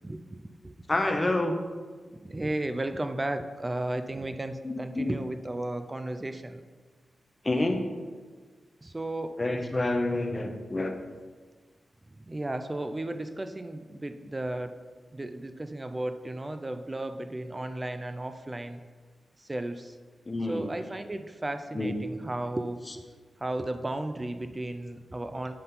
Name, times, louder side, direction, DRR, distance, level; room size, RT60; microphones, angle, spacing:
voice 1, 0.0-0.7 2.0-6.6 8.8-9.4 12.1-14.8 15.1-18.8 19.4-20.0 20.5-23.1 23.4-25.5, right 1 dB, 20° right, 9 dB, 0.4 m, -34 dB
voice 2, 0.9-1.6 4.6-5.0 7.4-7.8 9.4-10.9 20.3-20.7 21.7-21.9, left 2 dB, 20° left, 4 dB, 0.7 m, -28 dB
7.6 x 4.1 x 5.3 m, 1.5 s
wide cardioid pair, 120°, 0 cm